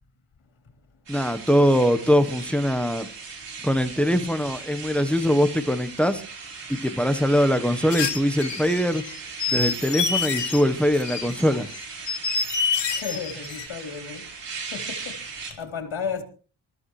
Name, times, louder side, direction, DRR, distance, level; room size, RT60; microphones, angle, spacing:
voice 1, 1.1-3.1 3.6-6.2 6.7-9.0 9.5-11.7, equal, 5° left, 1.0 m, -22 dB
sound 1, 1.1-15.5, right 5 dB, 65° right, 4.5 m, -39 dB
sound 2, 7.9-10.6 10.9-13.7, left 5 dB, 65° left, 3.1 m, -27 dB
voice 2, 12.9-14.3 14.7-15.2 15.6-16.2, left 6 dB, 85° left, 3.5 m, -33 dB
28.5 x 14.0 x 3.1 m
wide cardioid pair, 165°, 46 cm